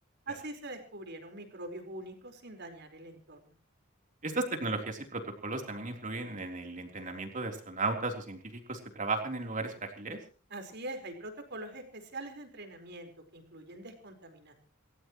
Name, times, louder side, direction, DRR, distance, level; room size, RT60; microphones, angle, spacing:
voice 1, 0.3-3.6 10.5-14.6, right 2 dB, 55° right, 5 dB, 4.7 m, -43 dB
voice 2, 4.2-10.2, right 3 dB, 40° right, 3 dB, 3.7 m, -35 dB
29.0 x 14.5 x 3.1 m, 0.39 s
head